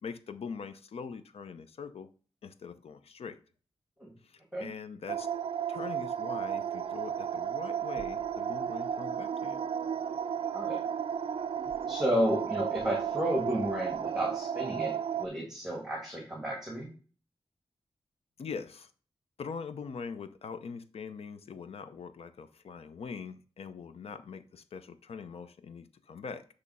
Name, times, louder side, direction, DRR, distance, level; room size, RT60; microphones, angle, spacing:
voice 1, 0.0-2.1 2.4-3.4 4.2-5.3 5.7-9.6 18.4-18.9 19.4-26.5, left 5 dB, 85° left, 0.6 m, -42 dB
sound 1, 5.1-15.3, right 8 dB, 65° right, 0.4 m, -33 dB
voice 2, 11.9-16.9, equal, 5° right, 1.6 m, -32 dB
8.5 x 3.2 x 5.4 m
wide cardioid pair, 155°, 10 cm